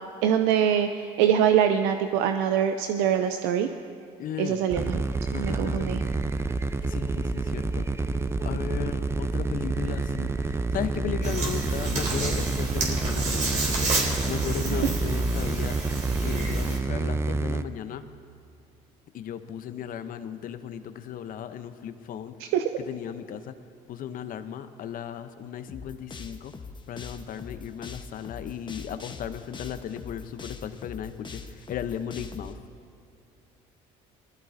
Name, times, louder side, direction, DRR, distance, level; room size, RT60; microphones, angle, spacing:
voice 1, 0.2-3.7 4.4-5.0 5.3-6.0 22.4-22.6, right 9 dB, 85° right, 7 dB, 0.6 m, -24 dB
voice 2, 4.2-4.6 5.3-5.9 6.9-7.9 8.4-15.8 16.2-18.0 19.1-22.4 22.8-23.5 23.9-26.5 26.9-32.6, left 9 dB, 55° left, 10 dB, 0.8 m, -36 dB
sound 1, 4.7-17.6, right 3 dB, 15° right, 0.6 m, -28 dB
sound 2, 11.2-16.8, right 3 dB, 45° right, 3.6 m, -30 dB
sound 3, 25.7-32.5, left 4 dB, 30° left, 1.1 m, -42 dB
20.0 x 14.0 x 2.7 m, 2.6 s
supercardioid pair, 80°, 17 cm